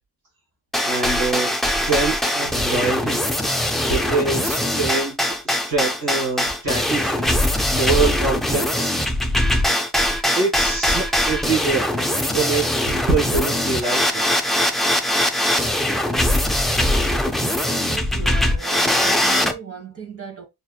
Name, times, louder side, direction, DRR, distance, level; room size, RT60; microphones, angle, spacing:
sound 1, 0.7-19.5, left 1 dB, ahead, 0.3 m, -21 dB
voice 1, 0.8-1.5 1.9-3.2 3.9-8.9 10.3-11.9 12.2-14.2, right 3 dB, 60° right, 2.7 m, -24 dB
voice 2, 17.7-20.4, right 6 dB, 35° right, 1.5 m, -37 dB
5.3 x 2.8 x 2.2 m
wide cardioid pair, 170°, 41 cm